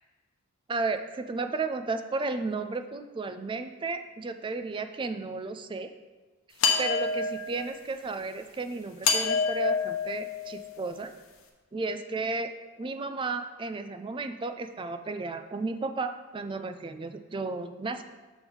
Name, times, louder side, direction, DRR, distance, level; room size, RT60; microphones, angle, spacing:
voice 1, 0.7-5.9 6.8-11.1 11.7-12.5 12.8-18.0, right 3 dB, 25° right, 8 dB, 0.4 m, -33 dB
sound 1, 6.6-7.7 9.0-10.9, left 5 dB, 75° left, 0.9 m, -27 dB
7.0 x 3.5 x 6.1 m, 1.3 s
head